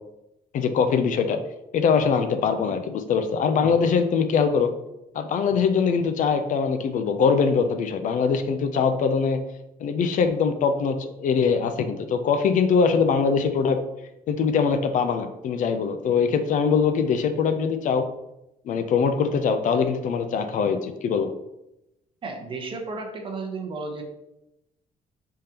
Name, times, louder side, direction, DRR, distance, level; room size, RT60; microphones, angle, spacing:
voice 1, 0.5-1.4 1.7-4.7 5.1-9.4 9.8-13.8 14.3-18.1 18.7-21.3, left 6 dB, 55° left, 8 dB, 0.4 m, -22 dB
voice 2, 22.2-24.0, right 3 dB, 35° right, 3 dB, 0.8 m, -33 dB
5.1 x 3.7 x 2.8 m, 0.88 s
cardioid pair, 160°, 16 cm